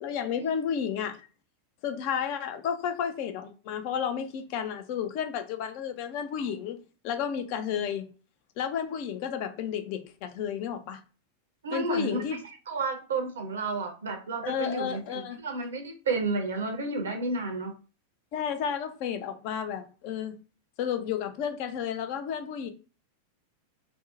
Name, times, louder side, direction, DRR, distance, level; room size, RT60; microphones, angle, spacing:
voice 1, 0.0-1.3 1.8-6.8 7.0-8.0 8.6-11.0 11.7-12.4 14.4-15.4 18.3-20.3 20.8-22.7, left 8 dB, 45° left, 0.4 m, -32 dB
voice 2, 11.6-12.2 12.7-17.7, right 3 dB, 65° right, 0.5 m, -31 dB
2.6 x 2.0 x 2.5 m
figure-of-eight pair, 90°, 0 cm